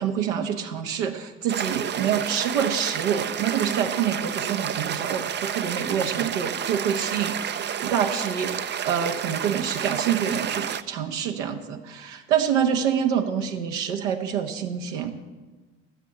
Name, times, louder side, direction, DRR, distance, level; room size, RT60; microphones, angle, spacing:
voice 1, 0.0-15.3, right 8 dB, 75° right, 4 dB, 1.4 m, -26 dB
sound 1, 1.5-10.8, right 9 dB, 30° right, 0.6 m, -30 dB
13.5 x 7.5 x 7.0 m, 1.3 s
hypercardioid pair, 60°, 35 cm